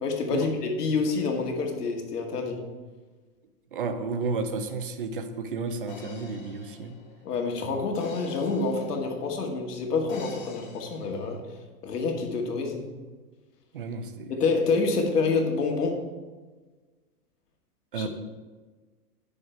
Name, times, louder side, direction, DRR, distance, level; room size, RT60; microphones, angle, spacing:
voice 1, 0.0-2.6 7.2-11.4 11.8-12.9 14.3-16.0 17.9-18.1, left 4 dB, 90° left, 2 dB, 2.0 m, -27 dB
voice 2, 3.7-7.0 13.7-14.3 17.9-18.1, right 4 dB, 35° right, 8 dB, 0.6 m, -32 dB
sound 1, 5.9-9.4 10.1-11.4, left 5 dB, 30° left, 0.7 m, -46 dB
9.2 x 6.5 x 4.5 m, 1.3 s
supercardioid pair, 180°, 45 cm